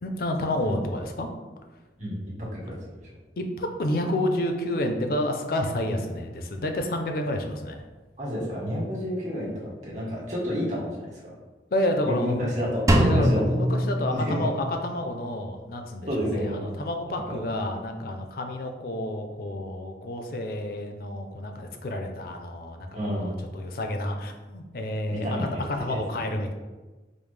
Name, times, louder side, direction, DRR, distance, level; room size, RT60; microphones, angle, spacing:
voice 1, 0.0-1.3 3.4-7.8 11.7-12.5 12.9-25.3 25.6-26.5, left 1 dB, 55° left, 4 dB, 0.4 m, -30 dB
voice 2, 2.5-3.2 5.8-5.9 8.2-11.3 12.0-13.6 14.1-14.5 16.1-16.7 17.3-17.4 22.9-23.4 25.1-25.6 25.9-26.3, equal, 40° right, -6 dB, 1.3 m, -30 dB
Drum, 12.9-14.8, equal, 20° right, 0.3 m, -23 dB
5.1 x 2.0 x 3.2 m, 1.2 s
head